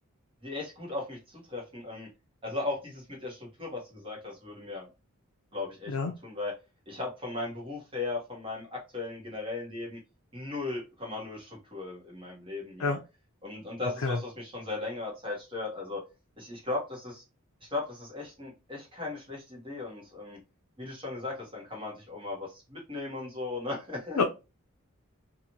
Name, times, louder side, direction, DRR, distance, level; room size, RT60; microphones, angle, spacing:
voice 1, 0.4-2.1 2.4-4.9 5.5-5.9 6.2-6.5 6.9-10.0 10.3-13.0 13.4-16.0 16.4-17.2 17.6-20.4 20.8-24.2, left 3 dB, 25° right, -2 dB, 1.1 m, -37 dB
voice 2, 5.9-6.1 12.8-13.0 14.0-14.2 24.2-24.3, left 4 dB, 85° left, 3 dB, 0.5 m, -27 dB
3.0 x 2.4 x 2.6 m, 0.28 s
head